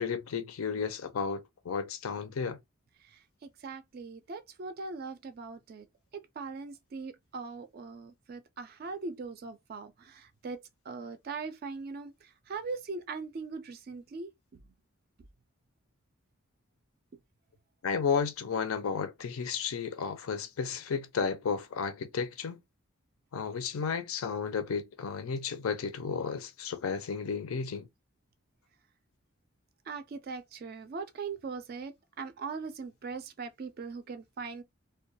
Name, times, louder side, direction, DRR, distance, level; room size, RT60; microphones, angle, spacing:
voice 1, 0.0-2.6 17.8-22.6 23.3-27.9, left 6 dB, 85° left, 0.5 m, -33 dB
voice 2, 3.0-5.9 6.4-10.6 10.9-14.6 29.9-34.6, right 4 dB, 45° right, 0.3 m, -40 dB
2.2 x 2.2 x 2.6 m
head